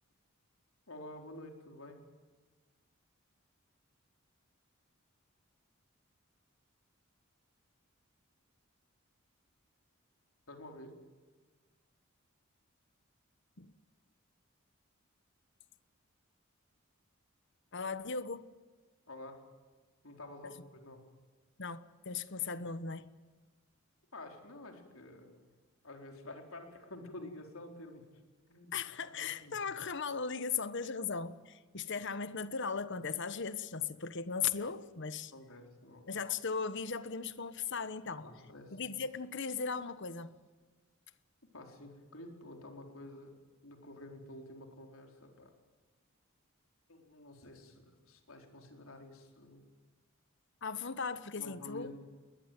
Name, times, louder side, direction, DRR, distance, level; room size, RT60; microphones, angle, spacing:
voice 1, 0.9-2.0 10.5-11.0 19.1-19.4 20.0-21.1 24.1-25.4 25.8-28.1 28.5-29.6 35.3-36.1 38.2-38.8 41.5-43.4 43.6-45.5 46.9-49.7 51.4-51.9, left 1 dB, 75° left, 4.3 m, -50 dB
voice 2, 17.7-18.5 20.4-20.5 21.6-23.1 28.7-35.3 36.1-38.2 38.7-40.4 50.6-51.9, left 5 dB, 55° left, 1.2 m, -37 dB
21.5 x 20.5 x 9.3 m
head